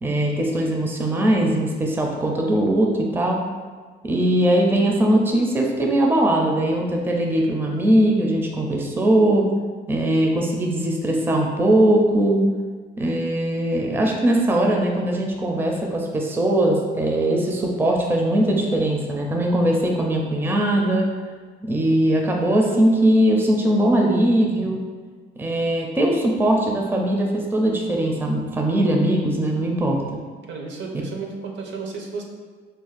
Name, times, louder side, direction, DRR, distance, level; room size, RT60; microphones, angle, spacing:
voice 1, 0.0-3.4 4.0-9.5 9.9-12.4 13.0-21.1 21.6-24.8 25.4-30.0, right 1 dB, 10° right, 0 dB, 0.4 m, -20 dB
voice 2, 30.5-32.2, right 4 dB, 65° right, 1 dB, 0.6 m, -33 dB
2.5 x 2.3 x 3.9 m, 1.5 s
cardioid pair, 90°, 20 cm